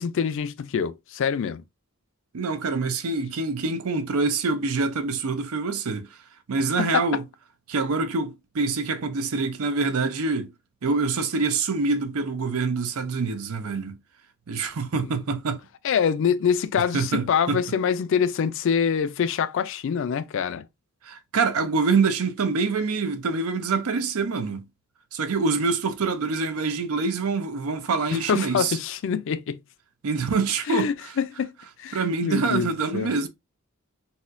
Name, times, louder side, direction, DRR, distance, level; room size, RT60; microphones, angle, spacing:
voice 1, 0.0-1.6 6.8-7.1 15.0-15.1 15.8-20.7 28.1-29.6 30.7-31.5 31.8-33.1, left 7 dB, 60° left, 0.4 m, -25 dB
voice 2, 2.3-6.1 6.5-7.2 7.7-10.5 10.8-14.0 14.5-15.6 16.9-17.6 21.0-24.6 25.1-28.8 30.0-31.1 31.9-33.3, right 4 dB, 90° right, 0.6 m, -25 dB
4.1 x 2.2 x 2.5 m
head